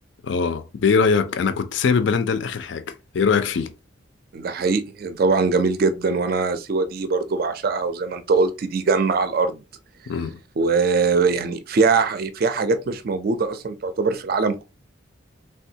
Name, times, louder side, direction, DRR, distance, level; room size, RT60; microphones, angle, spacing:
voice 1, 0.2-3.7 10.1-10.4, left 5 dB, 65° left, 0.4 m, -22 dB
voice 2, 4.3-9.6 10.6-14.6, right 4 dB, 50° right, 0.4 m, -22 dB
3.5 x 2.3 x 2.7 m
head